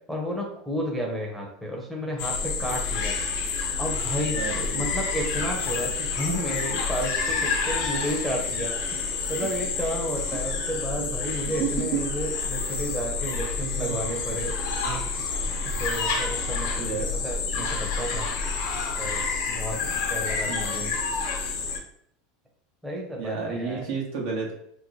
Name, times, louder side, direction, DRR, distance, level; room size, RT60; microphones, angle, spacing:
voice 1, 0.1-3.5 3.8-4.4 4.7-14.5 15.6-18.3 19.0-20.9 22.8-23.8, equal, 5° right, -3 dB, 0.7 m, -32 dB
sound 1, 2.2-21.8, left 4 dB, 70° left, 0.7 m, -29 dB
voice 2, 4.3-4.9 11.0-11.8 13.8-14.0 14.8-15.0 16.8-17.2 19.7-19.9 20.5-20.9 23.2-24.5, right 5 dB, 70° right, -1 dB, 1.2 m, -32 dB
3.0 x 2.1 x 4.0 m, 0.69 s
supercardioid pair, 135°, 0 cm